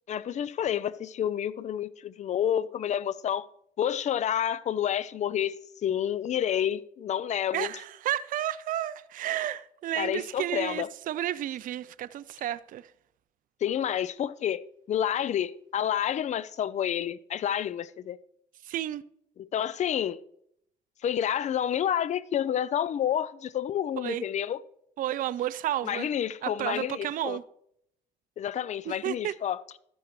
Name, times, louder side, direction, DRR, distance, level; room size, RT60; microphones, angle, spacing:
voice 1, 0.1-3.5 3.8-5.6 5.8-7.7 10.0-10.9 13.6-18.2 19.4-20.2 21.0-24.6 25.8-27.4 28.4-29.6, left 10 dB, 45° left, 0.5 m, -29 dB
voice 2, 7.5-12.9 18.6-19.0 24.0-24.2 25.0-26.1 26.4-27.4 28.9-29.3, right 12 dB, 55° right, 0.5 m, -32 dB
13.5 x 10.5 x 3.2 m
cardioid pair, 110°, 17 cm